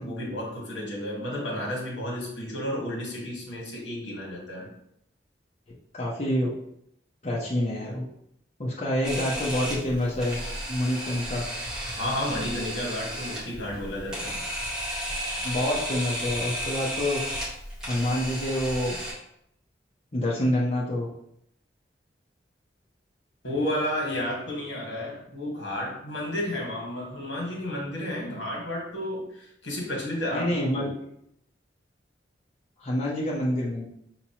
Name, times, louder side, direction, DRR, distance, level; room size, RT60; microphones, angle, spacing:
voice 1, 0.0-4.7 12.0-14.4 23.4-30.9, left 1 dB, 80° left, -2 dB, 1.5 m, -32 dB
voice 2, 5.9-6.5 7.2-8.0 8.6-10.4 10.7-11.4 15.4-17.2 17.9-19.0 20.1-21.1 30.3-30.9 32.8-33.9, left 1 dB, 35° left, -6 dB, 0.8 m, -27 dB
Camera, 9.0-19.1, equal, 5° right, 1.3 m, -33 dB
5.7 x 2.9 x 2.9 m, 0.74 s
head